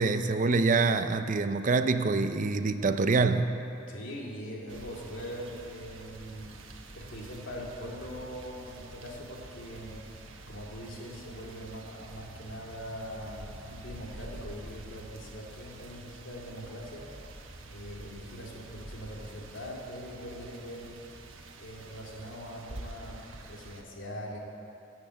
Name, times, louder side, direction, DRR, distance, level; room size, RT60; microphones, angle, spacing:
voice 1, 0.0-3.5, right 3 dB, 40° right, 9 dB, 0.5 m, -25 dB
voice 2, 3.9-6.5 6.9-10.2 10.5-17.1 17.7-21.0 21.6-23.2 23.5-24.4, equal, 75° left, -2 dB, 2.5 m, -42 dB
sound 1, 4.7-23.8, right 2 dB, 85° right, 1.1 m, -47 dB
13.5 x 7.9 x 7.7 m, 2.8 s
head